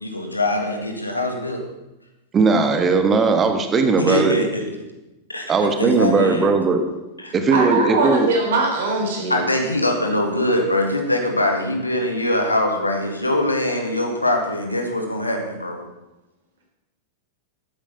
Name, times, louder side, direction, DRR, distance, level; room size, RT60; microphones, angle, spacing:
voice 1, 0.0-1.6 4.0-4.7 5.3-6.5 7.2-7.3 7.8-7.9 9.3-15.8, left 1 dB, 85° left, 3 dB, 1.9 m, -23 dB
voice 2, 2.3-4.4 5.5-6.8 7.3-8.3, right 4 dB, 25° right, 7 dB, 1.4 m, -18 dB
voice 3, 7.5-9.4, right 3 dB, 60° right, 0 dB, 3.8 m, -21 dB
12.5 x 9.0 x 5.6 m, 0.99 s
figure-of-eight pair, 90°, 0 cm